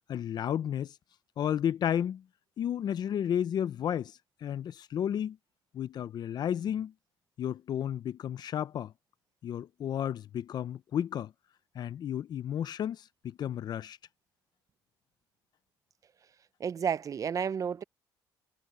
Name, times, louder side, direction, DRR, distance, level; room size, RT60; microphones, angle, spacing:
voice 1, 0.1-0.9 1.4-2.2 2.6-4.1 4.4-5.4 5.7-6.9 7.4-8.9 9.4-11.3 11.7-14.0, left 9 dB, 55° left, 0.8 m, -32 dB
voice 2, 16.6-17.8, right 7 dB, 40° right, 0.6 m, -31 dB
cardioid pair, 85°, 8 cm